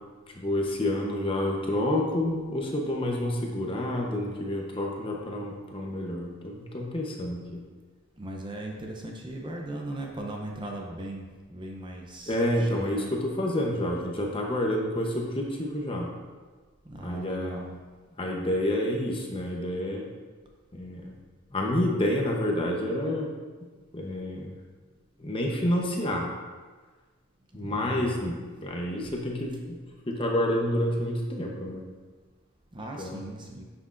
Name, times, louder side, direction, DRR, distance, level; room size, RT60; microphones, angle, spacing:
voice 1, 0.3-7.6 12.3-16.1 17.0-17.8 18.2-20.1 20.7-21.1 21.5-23.3 23.9-24.5 25.2-26.3 27.5-29.8 30.1-31.8 33.0-33.3, left 1 dB, 25° left, 0 dB, 0.8 m, -29 dB
voice 2, 8.2-13.1 16.8-17.7 27.6-28.2 32.7-33.6, right 1 dB, 20° right, 0 dB, 0.6 m, -38 dB
9.6 x 6.0 x 2.5 m, 1.4 s
head